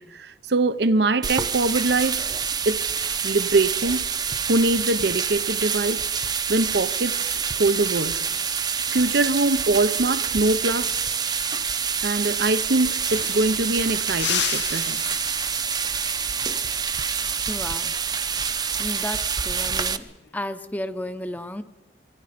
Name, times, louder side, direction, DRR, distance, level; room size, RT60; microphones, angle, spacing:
voice 1, 0.0-2.2 2.6-2.9 3.2-4.0 4.5-6.1 6.5-8.2 8.9-11.0 12.0-15.0, right 2 dB, 70° right, 0.8 m, -23 dB
sound 1, 1.2-20.0, right 6 dB, 25° right, 0.7 m, -27 dB
sound 2, 12.8-13.7 14.1-15.9 18.4-18.7 20.1-20.6, left 12 dB, 75° left, 0.7 m, -32 dB
voice 2, 17.5-18.0 18.8-20.1 20.3-21.6, left 1 dB, 10° left, 0.8 m, -33 dB
25.5 x 23.5 x 5.1 m
head